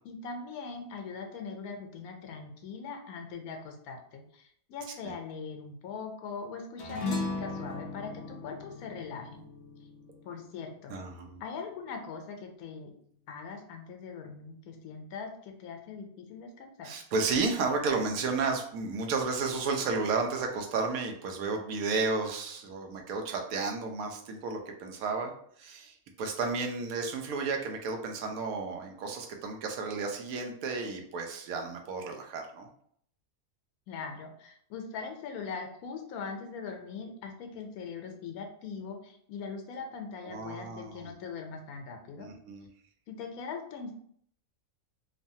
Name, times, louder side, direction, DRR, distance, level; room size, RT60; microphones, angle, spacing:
voice 1, 0.0-9.4 10.2-10.9 11.4-12.9 13.3-16.9 33.9-42.3 43.1-43.9, left 5 dB, 85° left, 4 dB, 1.1 m, -41 dB
sound 1, 6.8-11.5, left 3 dB, 60° left, 0.8 m, -37 dB
voice 2, 10.9-11.4 16.8-25.3 25.6-32.7 40.2-41.1 42.2-42.7, right 4 dB, 80° right, 3 dB, 1.0 m, -32 dB
3.1 x 2.2 x 2.6 m, 0.64 s
omnidirectional pair, 1.5 m